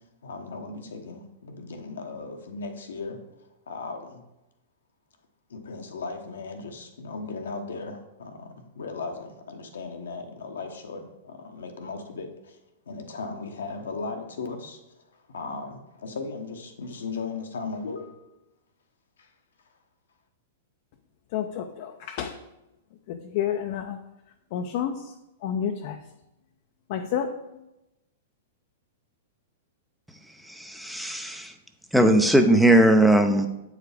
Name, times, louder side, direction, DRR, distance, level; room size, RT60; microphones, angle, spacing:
voice 1, 0.2-3.2 3.7-4.2 5.5-12.6 12.9-14.8 15.3-18.2 19.2-19.3, left 4 dB, 80° left, 5 dB, 0.9 m, -37 dB
voice 2, 21.3-22.4 23.1-24.0 24.5-25.1 25.4-26.0 26.9-27.6, left 8 dB, 55° left, 4 dB, 0.5 m, -30 dB
voice 3, 30.5-31.5 31.9-33.5, right 1 dB, ahead, 6 dB, 0.6 m, -19 dB
7.7 x 4.8 x 3.4 m, 0.94 s
hypercardioid pair, 115°, 0 cm